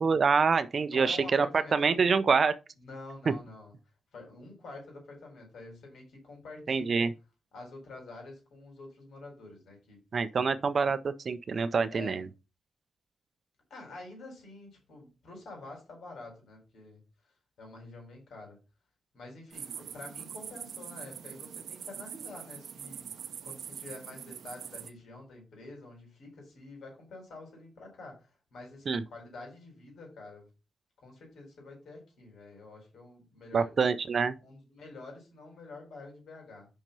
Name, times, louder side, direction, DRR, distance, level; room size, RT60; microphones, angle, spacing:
voice 1, 0.0-2.5 3.3-3.4 6.7-7.1 10.1-12.3 28.9-29.0 33.5-34.4, right 5 dB, 40° right, 0.5 m, -26 dB
voice 2, 0.8-2.2 2.8-3.7 4.1-7.1 7.5-10.0 10.4-10.6 11.9-12.2 13.7-17.0 17.6-18.6 19.1-30.5 31.0-33.8 34.4-36.7, left 2 dB, 80° left, 4.4 m, -48 dB
sound 1, 19.5-24.9, right 8 dB, 85° right, 0.6 m, -43 dB
6.0 x 5.6 x 5.4 m
wide cardioid pair, 175°, 0 cm